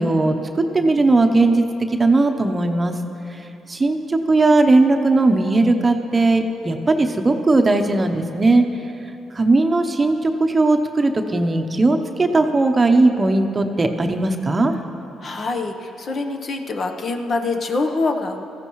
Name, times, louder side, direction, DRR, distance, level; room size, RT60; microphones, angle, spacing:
voice 1, 0.0-1.6 2.0-2.9 3.3-3.4 3.7-8.6 9.3-14.7, right 2 dB, 25° right, 5 dB, 0.8 m, -18 dB
voice 2, 15.2-18.4, left 3 dB, 50° left, 4 dB, 1.0 m, -25 dB
17.5 x 14.5 x 3.1 m, 2.9 s
cardioid pair, 90°, 0 cm